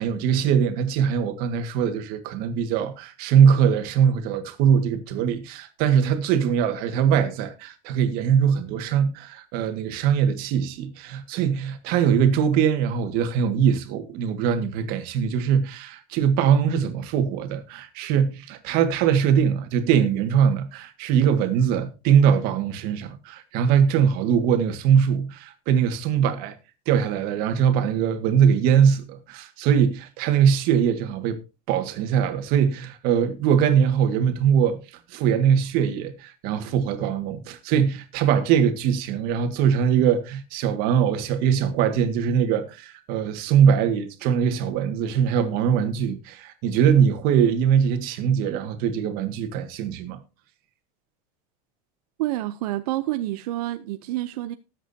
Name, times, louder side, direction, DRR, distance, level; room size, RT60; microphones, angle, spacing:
voice 1, 0.0-26.5 26.9-31.4 31.7-50.2, right 8 dB, 50° right, 1.9 m, -22 dB
voice 2, 52.2-54.6, right 15 dB, 80° right, 0.7 m, -28 dB
19.5 x 7.7 x 2.8 m
supercardioid pair, 155°, 19 cm